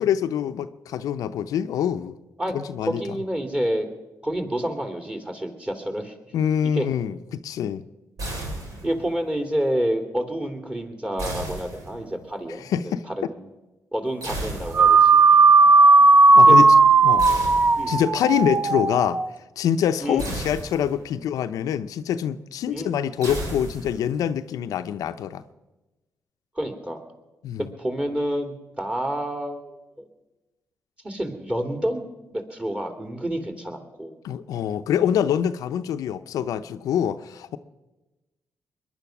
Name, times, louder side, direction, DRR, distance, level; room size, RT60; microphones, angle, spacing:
voice 1, 0.0-2.1 2.5-3.2 6.3-7.2 7.4-7.8 12.6-13.0 16.3-16.7 17.0-17.3 17.9-19.2 19.6-25.4 27.4-27.7 34.2-37.6, left 9 dB, 80° left, 9 dB, 0.7 m, -25 dB
voice 2, 2.8-3.9 4.2-6.1 6.6-6.9 8.8-12.6 13.1-13.4 13.9-15.2 16.4-16.5 17.7-18.0 20.0-20.4 22.7-22.9 26.5-27.0 27.8-29.8 31.0-32.0 32.3-34.1, equal, 15° right, 6 dB, 3.1 m, -28 dB
sound 1, 8.2-9.1 11.2-12.3 14.2-15.2 17.2-18.2 20.2-21.2 23.2-24.2, right 1 dB, 75° right, 3.8 m, -34 dB
sound 2, 14.7-19.3, right 3 dB, 35° right, 0.6 m, -15 dB
22.0 x 10.5 x 6.0 m, 1.1 s
supercardioid pair, 55°, 6 cm